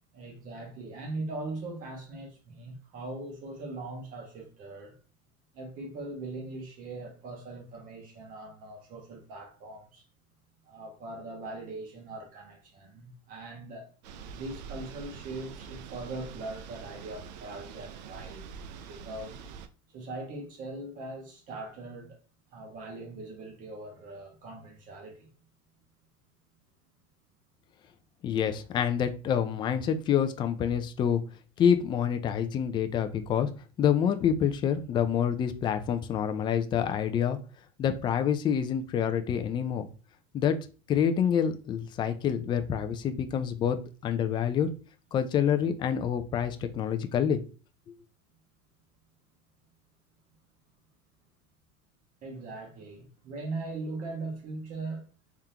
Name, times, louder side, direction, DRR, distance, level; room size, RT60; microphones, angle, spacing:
voice 1, 0.1-4.9 5.5-10.0 10.6-13.9 14.3-18.4 18.7-19.4 19.9-22.2 22.5-25.3 52.2-55.1, right 2 dB, 40° right, 1.5 m, -40 dB
sound 1, 14.0-19.7, right 6 dB, 85° right, 0.5 m, -45 dB
voice 2, 28.2-31.2 31.6-33.5 33.8-37.4 37.8-39.9 40.3-40.6 40.9-44.7 45.1-47.4, left 8 dB, 25° left, 0.4 m, -27 dB
3.6 x 3.5 x 2.8 m
supercardioid pair, 150°, 21 cm